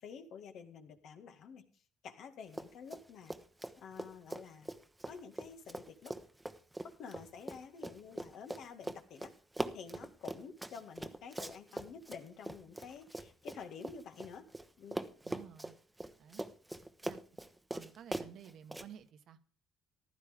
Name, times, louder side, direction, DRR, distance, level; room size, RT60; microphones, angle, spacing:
voice 1, 0.0-1.6 2.0-3.4 3.8-4.7 5.0-6.1 7.0-9.3 9.7-14.5 14.8-15.0, left 6 dB, 65° left, 6 dB, 1.9 m, -50 dB
Run, 2.5-3.0 3.3-14.7 14.9-18.9, right 1 dB, 10° right, 1.0 m, -42 dB
voice 2, 15.2-15.7 16.2-16.5 17.0-17.2 17.7-19.4, right 9 dB, 65° right, 9 dB, 1.3 m, -53 dB
14.5 x 12.0 x 3.5 m, 0.43 s
supercardioid pair, 80°, 0 cm